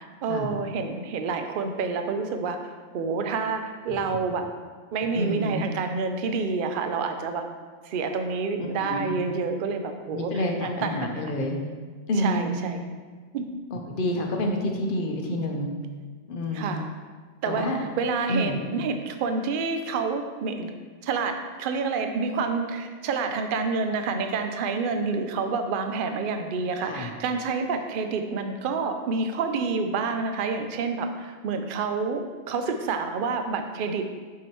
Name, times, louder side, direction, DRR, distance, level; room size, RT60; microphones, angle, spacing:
voice 1, 0.0-4.5 4.9-7.5 7.8-11.3 12.1-12.8 13.3-13.5 16.5-16.9 17.4-17.7 18.0-20.8 21.0-34.1, right 4 dB, 60° right, 6 dB, 0.6 m, -28 dB
voice 2, 5.1-5.6 8.6-9.1 10.1-11.6 12.1-12.6 13.7-15.7 16.3-16.7 17.5-17.8 18.3-18.5 26.8-27.1, left 1 dB, 50° left, 2 dB, 0.8 m, -28 dB
6.0 x 5.8 x 3.0 m, 1.5 s
omnidirectional pair, 1.3 m